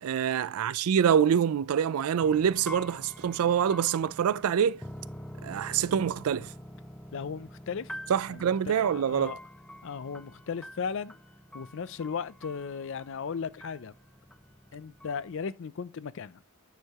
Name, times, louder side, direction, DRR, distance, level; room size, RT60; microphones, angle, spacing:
voice 1, 0.0-4.8 5.4-6.5 8.1-9.4, right 8 dB, 85° right, 0.4 m, -25 dB
sound 1, 2.2-15.4, equal, 5° left, 0.4 m, -46 dB
voice 2, 7.1-7.9 8.3-9.4 9.8-11.1 11.5-13.9 14.7-16.4, left 6 dB, 60° left, 0.4 m, -36 dB
9.3 x 4.6 x 3.5 m
head